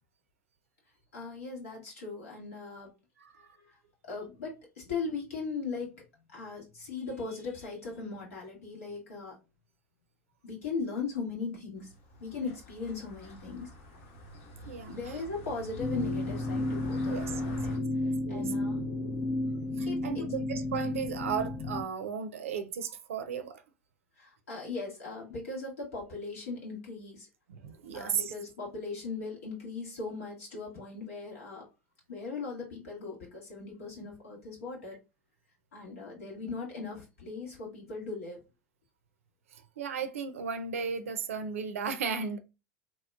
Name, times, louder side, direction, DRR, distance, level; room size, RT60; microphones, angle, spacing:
voice 1, 1.1-2.9 3.3-6.0 6.3-9.4 10.4-11.9 12.2-13.7 14.9-17.8 18.3-18.8 19.8-20.3 24.2-27.3 27.9-31.6 32.1-35.0 35.7-38.4, left 4 dB, 90° left, 1.5 m, -39 dB
voice 2, 3.2-3.6 14.7-15.2 17.1-17.5 18.0-18.5 19.8-23.6 27.5-28.3 39.5-42.4, right 6 dB, 90° right, 0.4 m, -35 dB
sound 1, 11.8-17.8, left 1 dB, 65° left, 1.1 m, -47 dB
sound 2, 15.8-21.8, left 2 dB, 45° left, 0.5 m, -32 dB
2.9 x 2.9 x 2.3 m
hypercardioid pair, 95°, 7 cm